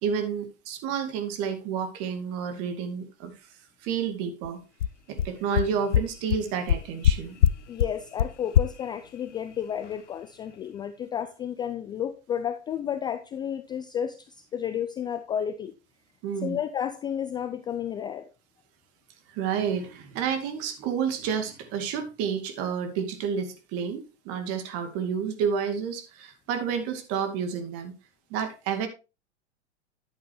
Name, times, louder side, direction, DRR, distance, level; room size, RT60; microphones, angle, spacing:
voice 1, 0.0-3.3 3.8-4.6 5.1-7.5 16.2-16.6 19.3-27.9 28.3-28.9, right 7 dB, 40° right, 2.3 m, -30 dB
sound 1, 4.4-4.5 4.8-4.9 5.2-5.3 5.6-5.7 5.9-6.0 6.3-6.4 6.7-7.1 7.4-7.5 7.8-7.9 8.2-8.3 8.5-8.6, left 10 dB, 90° left, 0.6 m, -20 dB
voice 2, 7.7-15.7 16.4-18.3, left 9 dB, 15° left, 0.4 m, -32 dB
10.5 x 8.9 x 3.0 m
hypercardioid pair, 115°, 35 cm